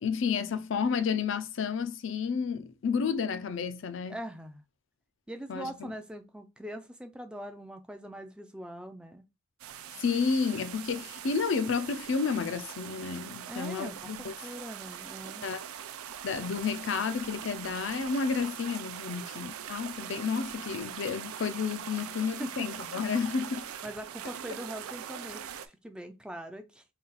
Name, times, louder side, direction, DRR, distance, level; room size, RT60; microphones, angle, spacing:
voice 1, 0.0-4.2 5.5-5.7 10.0-14.3 15.4-15.6 16.2-23.6, left 5 dB, 60° left, 0.4 m, -31 dB
voice 2, 4.1-4.6 5.3-9.2 13.5-15.5 19.1-19.3 22.0-22.7 23.8-26.8, right 1 dB, 5° right, 0.3 m, -42 dB
sound 1, 9.6-25.7, right 9 dB, 90° right, 0.4 m, -42 dB
3.9 x 2.4 x 3.9 m
head